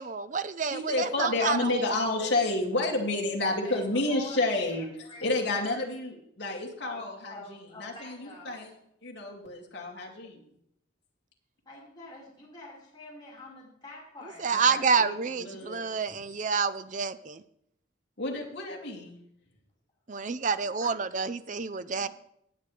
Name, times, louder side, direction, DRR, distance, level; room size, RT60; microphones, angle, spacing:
voice 1, 0.0-2.0 14.4-17.4 20.1-22.1, right 5 dB, 40° right, 13 dB, 0.5 m, -28 dB
voice 2, 0.7-8.7 9.0-10.4 14.5-15.1 15.4-15.9 18.2-19.2, left 2 dB, 60° left, -1 dB, 2.6 m, -30 dB
voice 3, 3.6-5.7 6.8-8.7 11.6-14.5 20.6-21.0 21.9-22.1, left 2 dB, 20° left, -7 dB, 5.0 m, -47 dB
19.0 x 8.0 x 3.4 m, 0.73 s
head